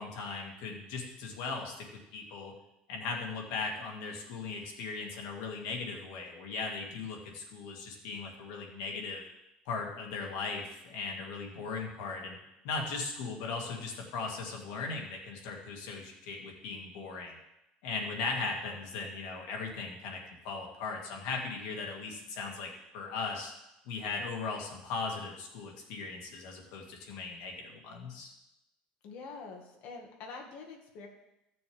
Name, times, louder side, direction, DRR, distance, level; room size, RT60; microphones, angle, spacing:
voice 1, 0.0-1.9 2.1-2.5 2.9-9.2 9.7-12.4 12.6-17.4 17.8-23.5 23.9-28.3, left 4 dB, 85° left, 0 dB, 2.2 m, -38 dB
voice 2, 29.0-31.1, left 4 dB, 60° left, 1 dB, 2.0 m, -46 dB
15.5 x 6.8 x 3.6 m, 0.89 s
cardioid pair, 145°, 3 cm